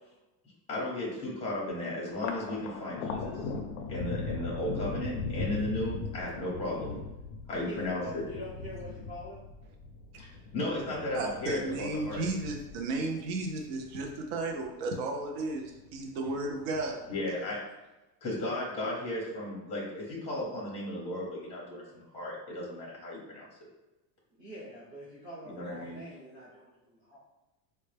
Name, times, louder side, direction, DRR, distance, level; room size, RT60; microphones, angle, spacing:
voice 1, 0.7-3.4 3.9-6.9 7.5-8.2 10.2-12.2 17.1-17.6 18.2-23.5 25.5-26.0, left 1 dB, 15° left, -5 dB, 0.7 m, -35 dB
Thunder, 2.1-14.7 15.1-15.9 16.3-17.1, left 4 dB, 50° left, 0.5 m, -39 dB
voice 2, 7.6-9.4 24.4-27.2, equal, 25° right, -12 dB, 1.0 m, -45 dB
voice 3, 11.1-17.0, right 2 dB, 45° right, 2 dB, 0.4 m, -34 dB
4.0 x 2.2 x 3.3 m, 1.0 s
cardioid pair, 180°, 49 cm